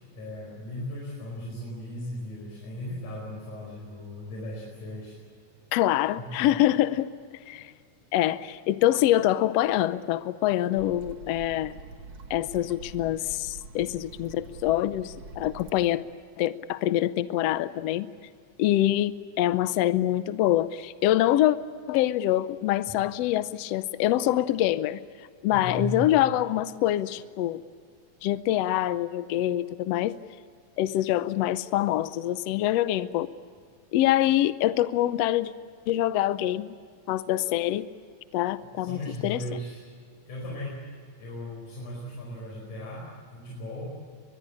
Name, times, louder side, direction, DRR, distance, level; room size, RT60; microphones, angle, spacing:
voice 1, 0.0-5.2 6.2-6.5 22.9-23.0 25.5-26.1 38.8-39.8 40.3-40.9 41.1-44.0, left 1 dB, 90° left, -3 dB, 6.4 m, -37 dB
voice 2, 5.7-7.1 7.5-7.7 8.1-11.7 12.3-16.0 16.4-18.1 18.6-21.6 21.9-25.0 25.4-27.6 28.2-30.1 30.8-33.3 33.9-35.5 35.9-36.7 37.1-37.9 38.3-39.4, left 13 dB, 70° left, 13 dB, 1.7 m, -25 dB
sound 1, 10.8-15.9, right 4 dB, 50° right, 2.6 m, -45 dB
23.5 x 21.5 x 8.6 m, 2.1 s
omnidirectional pair, 3.4 m